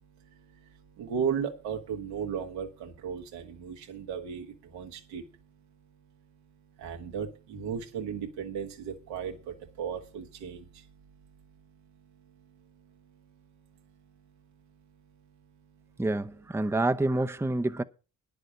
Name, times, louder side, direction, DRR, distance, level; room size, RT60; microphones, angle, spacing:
voice 1, 1.0-4.5 4.7-5.2 6.8-9.3 9.8-10.6, right 7 dB, 85° right, 1.7 m, -35 dB
voice 2, 16.0-17.8, right 2 dB, 5° right, 0.7 m, -27 dB
10.0 x 6.7 x 8.0 m
hypercardioid pair, 45°, 43 cm